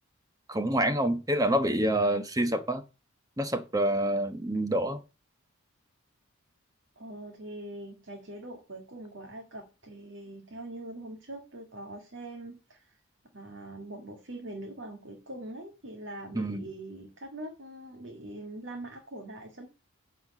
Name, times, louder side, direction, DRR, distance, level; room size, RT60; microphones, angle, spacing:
voice 1, 0.5-2.8 3.4-5.0 16.3-16.6, right 1 dB, 15° right, 1.1 m, -27 dB
voice 2, 7.0-13.0 13.3-19.7, right 1 dB, 60° right, 2.0 m, -43 dB
9.6 x 4.7 x 7.4 m
head